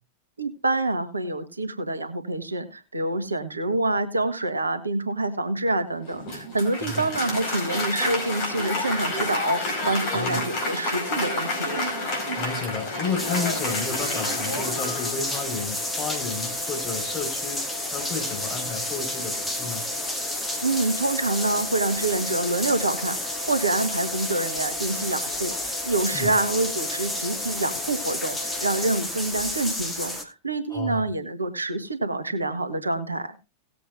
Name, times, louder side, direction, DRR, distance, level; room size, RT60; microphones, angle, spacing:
voice 1, 0.4-11.8 20.6-33.4, right 2 dB, 80° right, 9 dB, 1.3 m, -27 dB
Applause, 6.0-15.6, left 2 dB, 45° left, 5.0 m, -29 dB
sound 1, 11.0-29.0, left 4 dB, 60° left, 4.9 m, -41 dB
voice 2, 12.4-17.6 17.9-19.9 26.1-26.3 30.7-31.0, left 4 dB, 30° left, 3 dB, 4.8 m, -32 dB
sound 2, 13.2-30.2, left 1 dB, 10° left, 2.3 m, -31 dB
18.5 x 7.7 x 2.6 m, 0.29 s
figure-of-eight pair, 90°, 0 cm